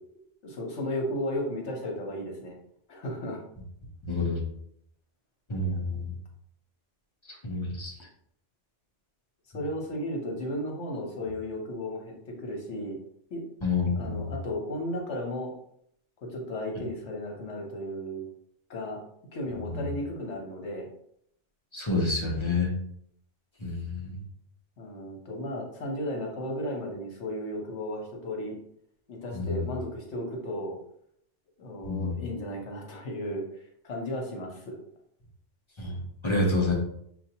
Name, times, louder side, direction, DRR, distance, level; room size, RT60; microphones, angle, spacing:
voice 1, 0.4-2.6 2.9-3.4 9.5-13.0 13.3-13.4 13.9-15.5 16.2-18.3 18.7-19.0 19.3-20.9 24.8-28.6 29.1-30.8 31.6-33.4 33.8-34.8, left 1 dB, 70° left, 0 dB, 1.2 m, -34 dB
voice 2, 4.0-4.4 5.5-6.1 7.4-7.9 13.6-14.3 19.7-19.9 21.7-22.7 23.6-24.2 29.3-29.7 31.8-32.2 35.8-36.7, left 3 dB, 30° left, -2 dB, 0.8 m, -28 dB
6.1 x 2.5 x 2.8 m, 0.70 s
omnidirectional pair, 1.2 m